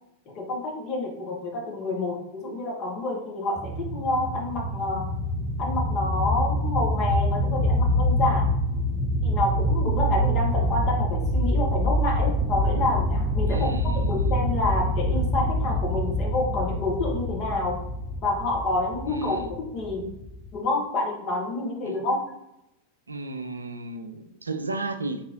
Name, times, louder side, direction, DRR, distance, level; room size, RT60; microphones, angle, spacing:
voice 1, 0.3-5.0 5.6-8.5 9.2-13.7 13.9-17.8 18.2-19.4 19.7-20.1 20.5-22.2, left 2 dB, 35° left, 1.4 m, -28 dB
sound 1, 3.6-20.6, equal, 20° right, 0.4 m, -26 dB
voice 2, 13.5-14.8 19.1-19.5 21.8-22.0 23.1-25.3, right 3 dB, 80° right, 0.3 m, -34 dB
3.8 x 3.7 x 3.0 m
figure-of-eight pair, 90°, 0 cm